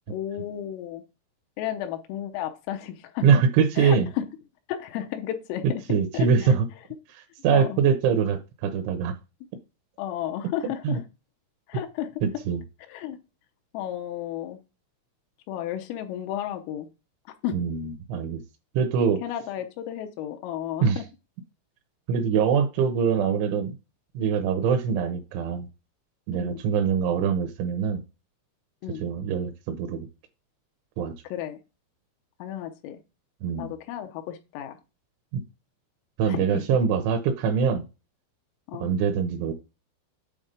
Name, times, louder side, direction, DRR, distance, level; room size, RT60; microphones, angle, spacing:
voice 1, 0.1-1.0 1.6-3.3 3.8-4.3 4.7-6.5 7.5-7.8 10.0-11.0 11.7-12.2 12.9-13.2 13.7-14.6 15.5-16.9 17.4-17.6 19.2-21.1 26.3-26.6 28.8-29.0 31.3-31.6 32.4-33.0 33.6-34.8 36.3-36.6 38.7-38.9, left 11 dB, 90° left, 6 dB, 3.4 m, -33 dB
voice 2, 3.2-4.1 5.9-6.7 7.4-9.1 10.8-11.0 12.2-12.6 17.5-18.4 18.7-19.2 20.8-21.0 22.1-23.8 24.1-25.7 26.3-28.0 29.0-30.1 31.0-31.1 33.4-33.7 35.3-35.4 36.2-37.8 38.8-39.5, right 6 dB, 80° right, 7 dB, 2.9 m, -23 dB
8.8 x 3.5 x 5.3 m, 0.29 s
omnidirectional pair, 5.9 m